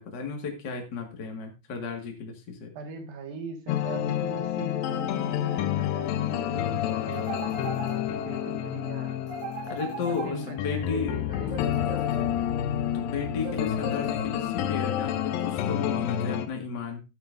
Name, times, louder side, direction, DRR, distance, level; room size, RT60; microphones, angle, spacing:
voice 1, 0.0-2.7 9.7-11.1 12.9-17.0, left 5 dB, 40° left, 2 dB, 1.7 m, -34 dB
voice 2, 2.8-9.2 10.1-11.9, right 3 dB, 85° right, 4 dB, 3.5 m, -40 dB
sound 1, 3.7-16.5, left 11 dB, 80° left, 2.4 m, -29 dB
sound 2, 7.1-8.4 9.3-10.8 11.5-12.7 13.4-14.6, right 5 dB, 50° right, 2.8 m, -39 dB
13.5 x 9.1 x 2.6 m, 0.27 s
omnidirectional pair, 4.1 m